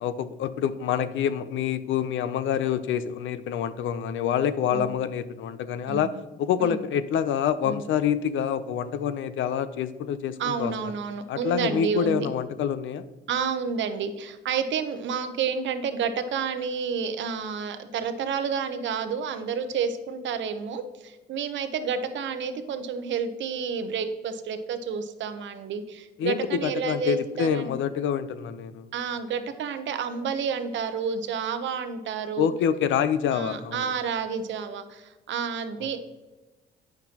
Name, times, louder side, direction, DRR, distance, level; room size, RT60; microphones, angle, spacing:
voice 1, 0.0-10.7 11.3-13.0 26.2-28.9 32.4-33.8, left 8 dB, 75° left, 13 dB, 0.5 m, -27 dB
voice 2, 10.4-12.3 13.3-27.8 28.9-32.5 33.3-36.0, right 6 dB, 70° right, 9 dB, 0.7 m, -30 dB
8.9 x 5.9 x 2.8 m, 1.2 s
cardioid pair, 90°, 20 cm